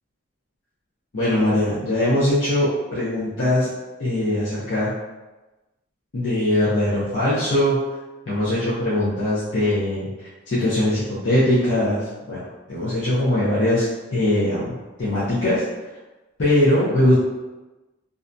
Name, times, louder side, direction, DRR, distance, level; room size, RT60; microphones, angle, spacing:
voice 1, 1.1-3.7 4.0-4.9 6.1-7.8 8.3-12.4 12.7-15.6 16.4-17.1, left 1 dB, 60° left, -10 dB, 0.6 m, -21 dB
2.4 x 2.1 x 2.5 m, 1.1 s
head